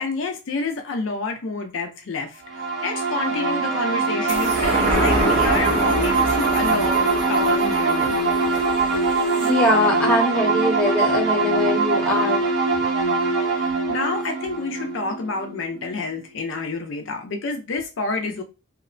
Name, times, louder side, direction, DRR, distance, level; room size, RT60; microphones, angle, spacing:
voice 1, 0.0-8.2 13.4-18.4, left 3 dB, 70° left, 0.4 m, -29 dB
sound 1, 2.5-16.0, right 3 dB, 65° right, 0.8 m, -22 dB
sound 2, 4.3-11.1 11.5-11.6, right 1 dB, 35° right, 0.6 m, -27 dB
voice 2, 9.4-12.4, left 1 dB, 5° left, 0.8 m, -22 dB
2.8 x 2.0 x 2.5 m
head